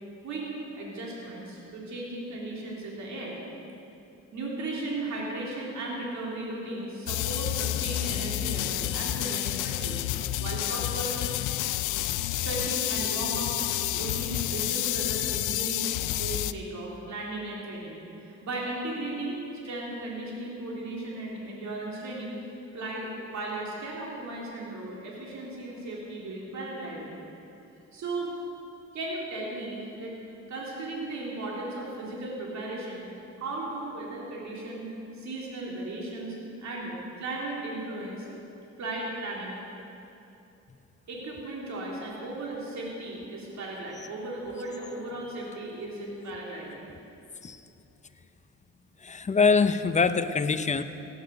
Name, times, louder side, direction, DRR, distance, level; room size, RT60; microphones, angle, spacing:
voice 1, 0.2-3.4 4.3-10.0 10.4-11.2 12.3-13.5 13.9-22.3 22.7-27.2 27.9-28.3 28.9-30.1 30.5-33.1 33.4-38.3 38.8-39.6 41.1-46.9, right 2 dB, 65° right, -4 dB, 3.4 m, -36 dB
sound 1, 7.1-16.5, left 15 dB, 85° left, 0.5 m, -29 dB
voice 2, 49.0-50.8, left 4 dB, 25° left, 10 dB, 0.7 m, -23 dB
16.5 x 10.0 x 6.6 m, 2.9 s
cardioid pair, 90°, 30 cm